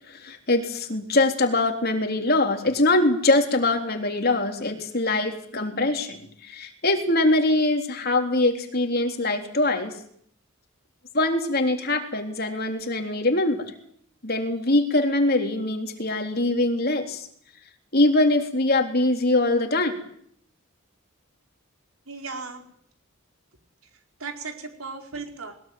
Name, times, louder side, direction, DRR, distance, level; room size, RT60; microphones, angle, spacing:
voice 1, 0.1-9.9 11.1-13.7 14.2-17.3 17.9-20.0, left 2 dB, 45° left, 5 dB, 3.6 m, -23 dB
voice 2, 22.1-22.6 24.2-25.5, right 4 dB, 90° right, 4 dB, 4.8 m, -36 dB
22.0 x 20.5 x 9.4 m, 0.65 s
head